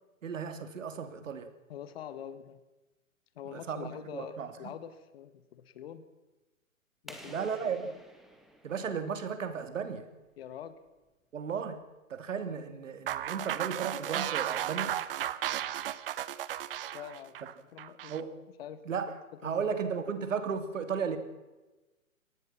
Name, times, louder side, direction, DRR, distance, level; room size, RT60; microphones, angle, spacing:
voice 1, 0.2-1.5 3.4-4.7 7.2-7.9 8.6-10.1 11.3-11.8 12.1-15.0 18.1-18.4 18.8-19.1 19.4-21.2, right 6 dB, 65° right, 9 dB, 3.1 m, -35 dB
voice 2, 1.7-2.6 3.4-6.0 7.0-7.5 7.8-8.0 10.4-10.8 16.9-18.1 18.6-18.8 19.4-19.6 20.0-20.1, left 9 dB, 45° left, 13 dB, 1.8 m, -45 dB
sound 1, 7.1-9.7, equal, ahead, 2.0 m, -52 dB
sound 2, 13.1-18.2, right 12 dB, 40° right, 1.0 m, -34 dB
24.5 x 19.0 x 5.9 m, 1.1 s
hypercardioid pair, 140°, 41 cm